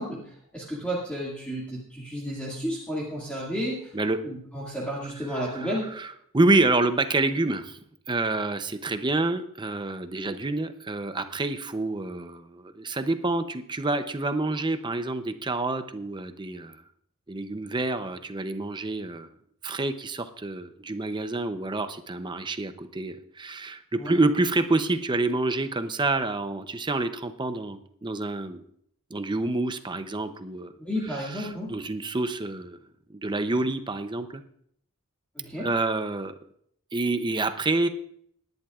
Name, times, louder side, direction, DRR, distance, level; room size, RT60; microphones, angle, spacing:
voice 1, 0.0-3.9 4.2-5.9 24.0-24.2 30.8-31.7 35.4-35.7, equal, 5° left, -6 dB, 2.1 m, -32 dB
voice 2, 5.5-7.8 8.1-16.8 17.3-19.3 19.6-28.6 29.1-30.7 31.1-32.8 33.1-34.4 35.6-36.3 36.9-37.9, right 2 dB, 20° right, 10 dB, 0.6 m, -28 dB
19.5 x 10.5 x 2.4 m, 0.67 s
head